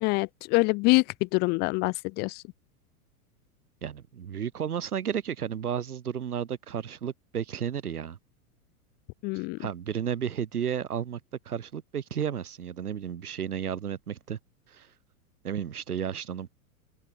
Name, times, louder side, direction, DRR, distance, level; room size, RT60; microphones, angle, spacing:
voice 1, 0.0-2.4 9.2-9.6, left 28 dB, 25° left, 0.4 m, -25 dB
voice 2, 3.8-8.2 9.3-11.2 11.4-14.4 14.7-14.9 15.4-16.5, right 8 dB, 80° right, 6.5 m, -33 dB
open air
hypercardioid pair, 105°, 44 cm